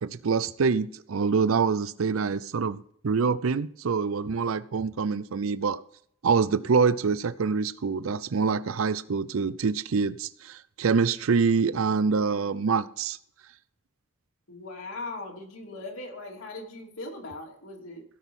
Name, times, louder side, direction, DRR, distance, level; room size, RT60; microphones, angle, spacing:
voice 1, 0.0-5.8 6.2-13.2, right 5 dB, 75° right, 0.5 m, -25 dB
voice 2, 12.2-12.7 14.5-18.0, left 2 dB, 80° left, 3.0 m, -40 dB
16.5 x 6.2 x 5.5 m
head